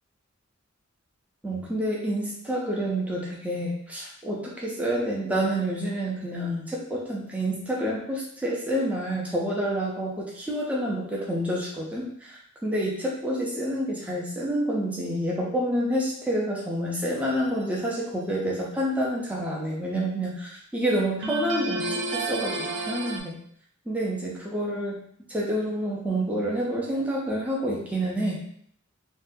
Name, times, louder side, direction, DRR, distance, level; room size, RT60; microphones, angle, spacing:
voice 1, 1.4-21.9 22.1-23.4 23.9-25.0 25.3-28.4, right 1 dB, 5° right, -4 dB, 0.5 m, -28 dB
sound 1, 17.2-17.8 21.2-23.2, right 2 dB, 55° right, 0.4 m, -31 dB
4.0 x 2.2 x 2.6 m, 0.65 s
head